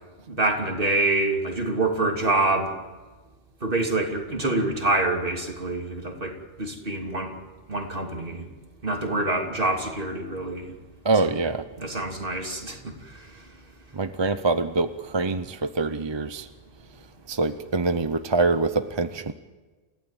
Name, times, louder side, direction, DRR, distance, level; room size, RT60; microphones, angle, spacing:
voice 1, 0.3-2.7 3.6-7.3 7.7-8.5 8.8-10.7 11.8-13.3, right 2 dB, 50° right, 3.2 m, -26 dB
voice 2, 11.0-11.6 13.9-16.5 17.3-19.3, right 3 dB, 30° right, 0.7 m, -25 dB
29.5 x 16.0 x 9.0 m
omnidirectional pair, 1.2 m